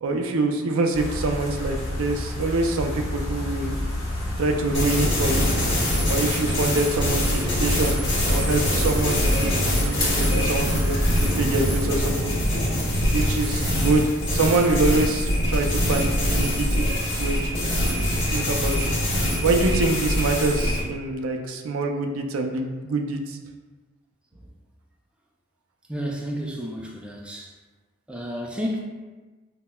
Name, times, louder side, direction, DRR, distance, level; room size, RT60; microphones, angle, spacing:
voice 1, 0.0-3.8 4.4-5.5 6.1-8.0 8.3-12.4 13.1-17.6 18.3-18.8 19.1-23.4, right 2 dB, 85° right, 3 dB, 0.4 m, -25 dB
sound 1, 0.9-11.9, left 1 dB, 20° left, 1.4 m, -30 dB
sound 2, 4.7-20.8, equal, 60° left, 1.4 m, -23 dB
voice 2, 25.9-27.6 28.1-28.8, equal, 5° right, -1 dB, 0.3 m, -31 dB
5.4 x 2.1 x 2.2 m, 1.3 s
head